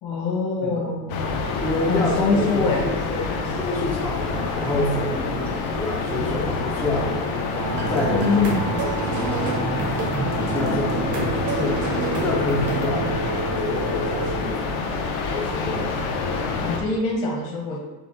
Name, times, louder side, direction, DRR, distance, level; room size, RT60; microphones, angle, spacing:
voice 1, 0.0-1.2 1.9-2.9 8.1-8.6 16.6-17.8, left 3 dB, 65° left, -1 dB, 1.3 m, -23 dB
sound 1, 1.1-16.8, left 4 dB, 85° left, 0.8 m, -27 dB
voice 2, 1.6-7.2 7.9-8.4 8.8-9.5 10.5-14.8 15.3-16.0, left 1 dB, 5° left, -5 dB, 0.4 m, -28 dB
sound 2, 7.5-14.4, right 4 dB, 50° right, 0.5 m, -30 dB
sound 3, 7.7-13.1, right 2 dB, 65° right, 1.1 m, -29 dB
5.7 x 2.1 x 3.9 m, 1.2 s
cardioid pair, 180°, 37 cm